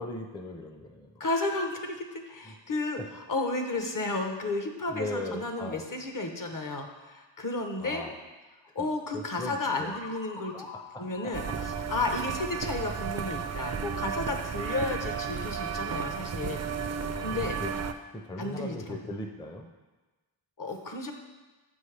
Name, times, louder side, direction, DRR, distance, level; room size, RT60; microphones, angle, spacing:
voice 1, 0.0-1.1 2.5-2.6 4.9-5.8 7.8-8.1 9.1-9.9 10.9-11.3 13.6-13.7 17.1-17.7 18.1-19.7, left 2 dB, 10° left, 3 dB, 0.6 m, -38 dB
voice 2, 1.2-8.0 8.7-10.7 11.0-16.6 17.2-17.6 18.4-19.1 20.6-21.1, left 2 dB, 45° left, 4 dB, 0.9 m, -33 dB
sound 1, 9.7-13.5, left 4 dB, 70° left, 1.1 m, -47 dB
sound 2, 11.3-17.9, right 7 dB, 35° right, 0.4 m, -33 dB
7.5 x 5.4 x 3.3 m, 1.2 s
cardioid pair, 60°, 47 cm